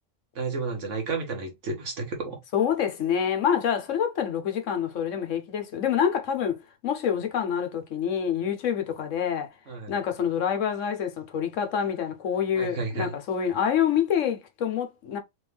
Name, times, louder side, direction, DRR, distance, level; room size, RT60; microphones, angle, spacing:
voice 1, 0.3-2.4 9.7-10.0 12.6-13.1, right 3 dB, 75° right, 1.6 m, -32 dB
voice 2, 2.5-9.5 9.9-15.2, left 8 dB, 80° left, 1.2 m, -27 dB
3.6 x 3.6 x 3.4 m
omnidirectional pair, 1.3 m